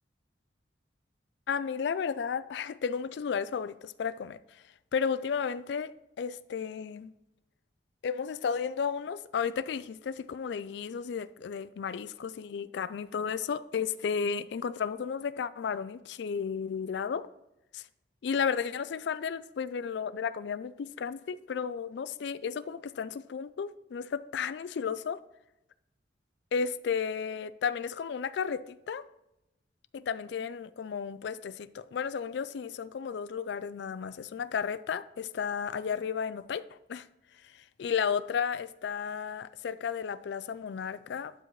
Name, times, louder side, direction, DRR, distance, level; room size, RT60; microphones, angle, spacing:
voice 1, 1.5-4.6 4.9-7.1 8.0-17.3 17.7-17.8 18.2-25.2 26.5-29.0 29.9-37.1 37.4-41.3, left 6 dB, 65° left, 0.3 m, -33 dB
11.5 x 5.0 x 3.1 m
head